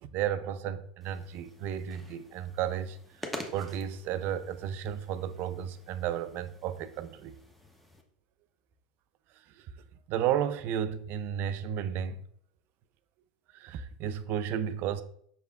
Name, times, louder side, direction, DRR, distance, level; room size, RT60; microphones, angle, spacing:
voice 1, 0.1-3.0 3.5-7.3 10.1-12.2 13.5-15.0, right 9 dB, 50° right, 0.3 m, -33 dB
sound 1, 1.0-8.0, left 1 dB, ahead, 0.7 m, -47 dB
5.4 x 3.3 x 2.3 m
hypercardioid pair, 95°, 4 cm